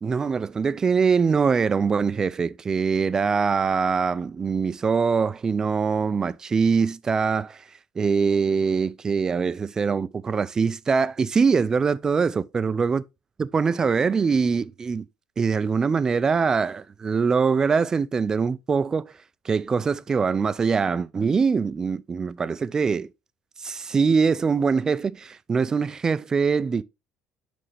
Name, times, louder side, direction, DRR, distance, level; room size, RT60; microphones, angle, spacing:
voice 1, 0.0-13.0 13.4-15.1 15.4-19.2 19.4-23.1 23.6-26.8, right 5 dB, 25° right, 0.4 m, -23 dB
7.6 x 5.4 x 3.3 m
cardioid pair, 130°, 3 cm